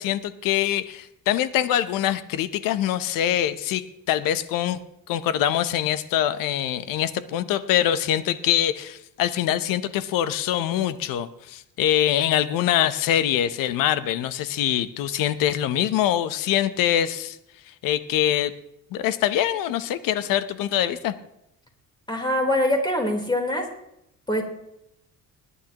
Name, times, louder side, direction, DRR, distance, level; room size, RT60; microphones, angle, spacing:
voice 1, 0.0-4.8 5.1-17.4 17.7-18.5 18.9-21.1, left 11 dB, 90° left, 14 dB, 0.8 m, -24 dB
voice 2, 22.1-23.7 24.3-24.4, left 1 dB, 15° left, 2 dB, 3.6 m, -23 dB
21.0 x 11.0 x 2.9 m, 0.80 s
cardioid pair, 95°, 32 cm